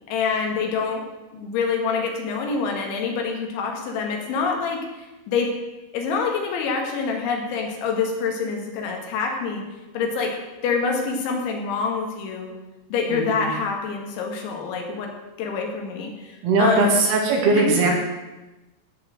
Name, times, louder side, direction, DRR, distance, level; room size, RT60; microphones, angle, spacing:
voice 1, 0.1-1.0 1.3-5.5 5.9-9.6 9.9-10.4 10.6-12.5 12.9-17.0 17.6-17.8, left 5 dB, 85° left, 2 dB, 4.3 m, -26 dB
voice 2, 13.1-13.5 16.4-17.9, right 3 dB, 65° right, 0 dB, 4.1 m, -20 dB
16.5 x 5.9 x 7.6 m, 1.1 s
omnidirectional pair, 5.2 m